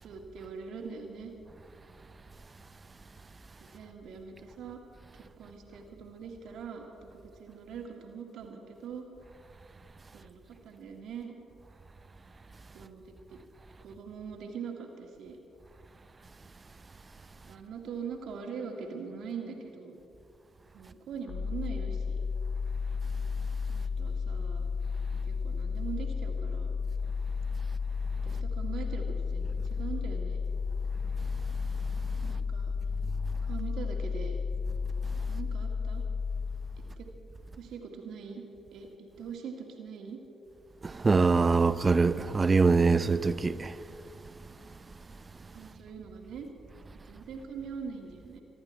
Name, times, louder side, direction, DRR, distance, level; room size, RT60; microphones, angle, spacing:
voice 1, 0.0-1.3 3.6-4.8 5.1-6.8 7.1-9.0 10.1-11.3 12.7-13.4 13.8-15.4 17.5-20.0 20.7-22.2 23.7-24.7 25.1-26.7 28.2-30.4 32.2-32.8 33.4-34.4 35.3-36.1 37.0-37.1 37.5-38.4 38.7-40.2 45.5-46.5 46.9-48.4, right 6 dB, 65° right, 2.0 m, -42 dB
sound 1, 21.3-37.1, left 5 dB, 35° left, 2.0 m, -33 dB
voice 2, 40.8-43.7, right 4 dB, 35° right, 0.7 m, -24 dB
25.0 x 11.0 x 4.5 m
hypercardioid pair, 40°, 0 cm